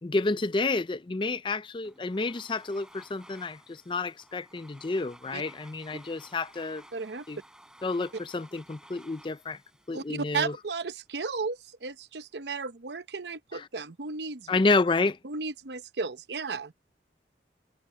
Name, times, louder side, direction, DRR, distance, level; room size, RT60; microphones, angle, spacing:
voice 1, 0.0-6.8 7.3-7.4 7.8-9.6 9.9-10.5 13.5-13.6 14.5-15.2, left 3 dB, 25° left, 0.4 m, -29 dB
Domestic sounds home sounds, 1.8-10.8, right 1 dB, 5° right, 6.1 m, -55 dB
voice 2, 6.9-7.3 9.9-14.6 15.2-16.7, right 4 dB, 70° right, 0.8 m, -34 dB
head